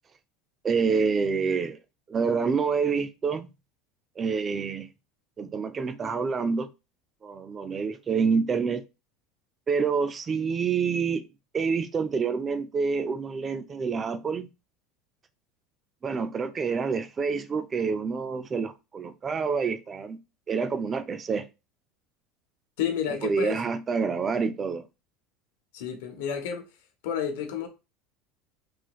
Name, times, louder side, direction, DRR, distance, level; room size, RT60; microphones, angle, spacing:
voice 1, 0.6-1.8 2.1-3.5 4.2-4.9 5.4-6.7 7.2-8.8 9.7-11.2 11.5-14.5 16.0-20.2 20.5-21.5 23.2-24.8, right 5 dB, 25° right, 0.4 m, -27 dB
voice 2, 22.8-23.6 25.7-26.7 27.0-27.7, left 8 dB, 80° left, 0.9 m, -30 dB
3.1 x 2.9 x 2.3 m
supercardioid pair, 130°, 0 cm